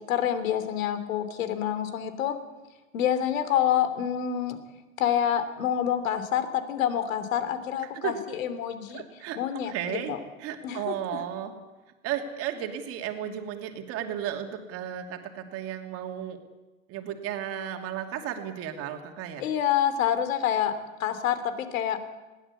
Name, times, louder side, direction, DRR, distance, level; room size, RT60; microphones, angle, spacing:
voice 1, 0.0-2.4 2.9-4.6 5.0-9.0 9.4-10.2 10.6-10.9 19.4-20.7 21.0-22.0, left 10 dB, 65° left, 11 dB, 3.0 m, -27 dB
voice 2, 8.9-11.5 12.0-16.4 16.9-19.4, right 10 dB, 30° right, 5 dB, 2.7 m, -34 dB
21.0 x 17.5 x 8.4 m, 1.1 s
hypercardioid pair, 145°, 43 cm